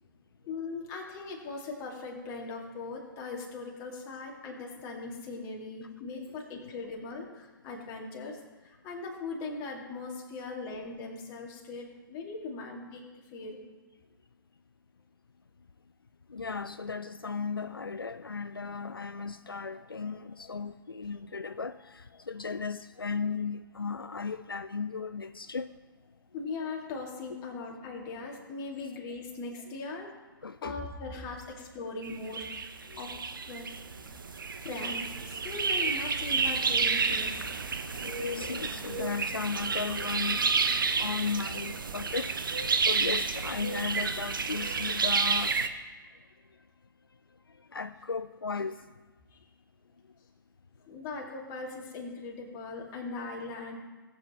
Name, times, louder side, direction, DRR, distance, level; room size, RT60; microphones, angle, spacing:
voice 1, 0.5-13.0 13.3-13.6 26.3-30.1 30.6-32.6 33.0-33.1 33.4-33.7 34.6-37.5 49.3-49.4 50.9-53.8, left 3 dB, 30° left, 2.3 m, -39 dB
voice 2, 16.3-25.7 30.4-30.8 32.9-33.0 38.0-40.5 41.0-45.8 47.7-48.8, left 5 dB, 80° left, 0.4 m, -36 dB
sound 1, 32.0-45.7, right 5 dB, 65° right, 0.9 m, -30 dB
19.0 x 8.1 x 3.1 m
figure-of-eight pair, 120°, 12 cm